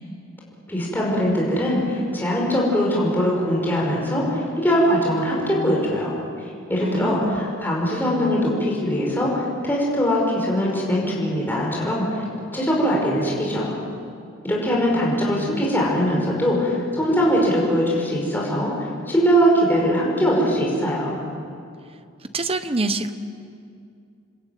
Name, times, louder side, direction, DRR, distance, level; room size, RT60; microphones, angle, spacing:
voice 1, 0.7-6.1 6.7-12.0 12.5-13.7 14.4-21.2, equal, 10° left, -3 dB, 5.3 m, -21 dB
voice 2, 6.8-7.4 22.3-23.1, right 2 dB, 30° right, 9 dB, 1.2 m, -25 dB
28.5 x 20.5 x 9.4 m, 2.4 s
head